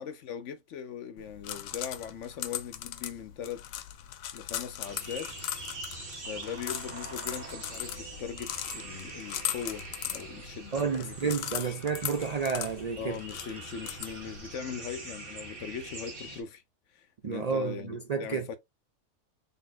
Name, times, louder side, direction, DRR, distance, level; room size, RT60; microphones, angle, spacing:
voice 1, 0.0-3.6 4.3-5.4 6.1-11.8 13.0-16.6 16.9-18.6, left 7 dB, 70° left, 0.9 m, -40 dB
sound 1, 1.2-14.5, left 11 dB, 85° left, 1.1 m, -39 dB
sound 2, 4.8-16.4, right 2 dB, 45° right, 1.6 m, -44 dB
voice 2, 10.7-13.2 17.2-18.4, right 6 dB, 85° right, 0.3 m, -31 dB
4.1 x 3.6 x 2.5 m
omnidirectional pair, 1.4 m